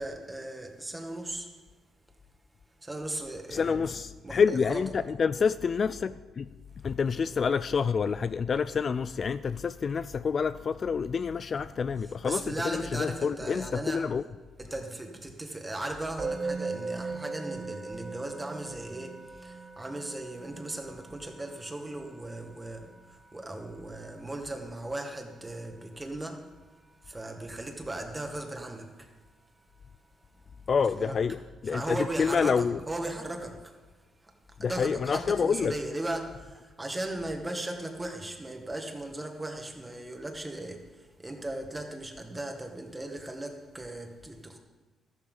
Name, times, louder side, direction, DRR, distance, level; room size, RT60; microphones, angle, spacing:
voice 1, 0.0-1.5 2.8-3.8 4.2-4.8 12.2-14.1 14.6-26.5 27.0-29.1 30.9-31.2 31.6-33.8 34.2-44.6, right 1 dB, 15° right, 1.8 m, -37 dB
voice 2, 3.5-6.5 6.8-14.2 30.7-31.4 31.6-32.8 34.6-35.7, left 6 dB, 45° left, 0.3 m, -28 dB
Musical instrument, 16.2-27.3, right 3 dB, 40° right, 3.0 m, -41 dB
13.5 x 12.0 x 4.0 m
cardioid pair, 90°, 0 cm